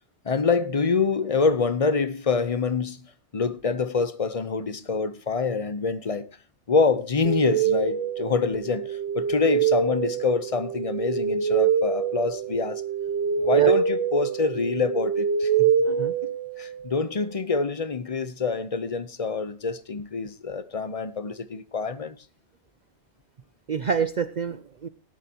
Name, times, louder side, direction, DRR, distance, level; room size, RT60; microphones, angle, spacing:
voice 1, 0.2-3.0 3.3-6.3 6.7-12.8 13.4-15.7 16.2-22.2, left 4 dB, 35° left, 0.9 m, -26 dB
sound 1, 7.2-16.9, right 7 dB, 90° right, 1.2 m, -25 dB
voice 2, 23.7-24.9, right 6 dB, 45° right, 0.7 m, -27 dB
18.0 x 10.5 x 2.9 m
omnidirectional pair, 1.1 m